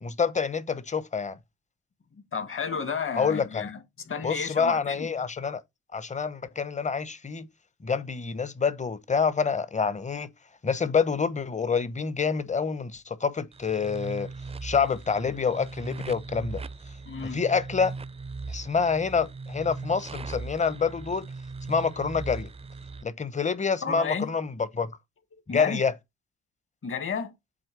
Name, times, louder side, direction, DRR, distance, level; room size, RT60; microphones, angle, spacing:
voice 1, 0.0-1.4 3.2-3.7 4.2-5.6 5.9-7.5 7.8-10.3 10.6-14.3 14.6-16.6 17.3-17.9 18.5-21.3 21.7-22.5 23.0-24.9 25.5-25.9, left 5 dB, 25° left, 1.0 m, -27 dB
voice 2, 2.3-3.8 4.0-5.1 17.1-17.4 23.8-24.3 25.5-25.8 26.8-27.3, left 6 dB, 45° left, 1.9 m, -32 dB
sound 1, 13.5-23.0, right 4 dB, 20° right, 0.5 m, -39 dB
7.8 x 3.3 x 4.7 m
cardioid pair, 90°, 30 cm